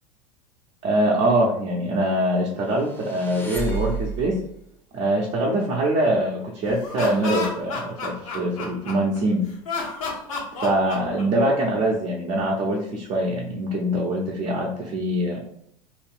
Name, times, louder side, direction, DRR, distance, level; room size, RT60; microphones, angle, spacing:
voice 1, 0.8-4.4 4.9-9.4 10.6-15.4, right 1 dB, 40° right, -4 dB, 0.7 m, -23 dB
sound 1, 2.7-4.5, right 2 dB, 10° left, 0.7 m, -31 dB
Laughter, 6.7-9.2 9.6-11.7, left 4 dB, 75° left, 0.9 m, -31 dB
2.6 x 2.3 x 3.4 m, 0.70 s
hypercardioid pair, 85°, 18 cm